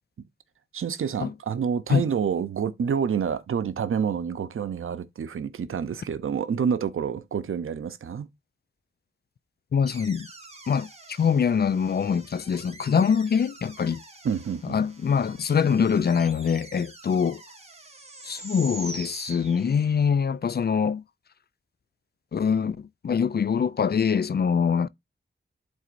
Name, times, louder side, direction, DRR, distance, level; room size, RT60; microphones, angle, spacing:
voice 1, 0.7-8.3 14.2-14.8, right 7 dB, 90° right, 0.6 m, -28 dB
voice 2, 9.7-10.3 10.7-14.0 14.6-17.4 18.2-21.0 22.3-24.9, left 6 dB, 50° left, 0.4 m, -24 dB
sound 1, 9.9-20.1, right 2 dB, 30° right, 1.7 m, -45 dB
11.0 x 4.1 x 2.5 m
cardioid pair, 55°, 21 cm